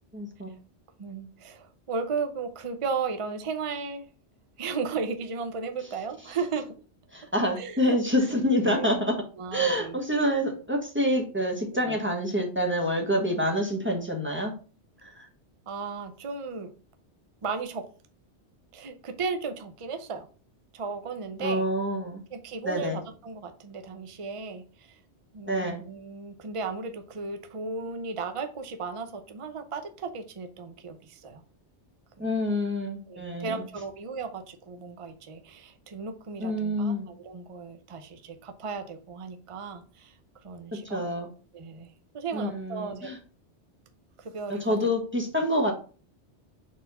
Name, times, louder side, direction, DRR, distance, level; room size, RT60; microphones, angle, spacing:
voice 1, 0.1-0.5 7.1-9.2 9.5-14.5 21.4-22.2 22.6-23.0 25.5-25.8 32.2-33.6 36.4-37.1 40.9-41.3 42.3-43.2 44.5-45.7, equal, 10° right, 0 dB, 1.3 m, -27 dB
voice 2, 1.0-4.1 4.6-6.8 7.6-10.0 11.7-12.0 15.7-16.7 17.4-17.8 18.7-20.3 20.7-21.7 22.3-25.0 25.3-31.4 32.2-32.3 33.1-40.1 40.4-41.1 41.5-43.1 44.2-44.9, right 4 dB, 35° right, 7 dB, 0.6 m, -35 dB
4.3 x 4.2 x 5.5 m, 0.38 s
omnidirectional pair, 1.2 m